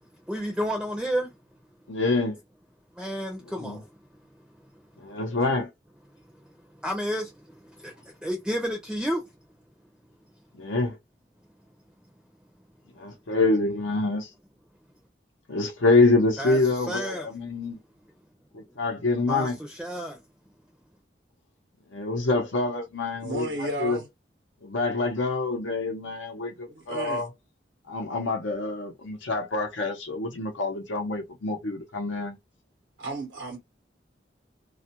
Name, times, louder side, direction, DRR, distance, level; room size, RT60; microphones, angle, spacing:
voice 1, 0.3-1.3 3.0-3.9 6.8-9.3 16.4-16.6 16.9-17.3 19.3-20.2, equal, 5° right, 0.5 m, -31 dB
voice 2, 1.9-2.4 3.6-3.8 5.0-5.7 10.5-11.0 13.0-14.3 15.5-17.8 18.5-19.6 21.9-24.0 24.6-27.3 27.9-32.4, left 3 dB, 90° left, 0.7 m, -26 dB
voice 3, 23.2-24.1 26.7-27.2 33.0-33.6, right 2 dB, 85° right, 0.8 m, -33 dB
2.3 x 2.1 x 2.8 m
head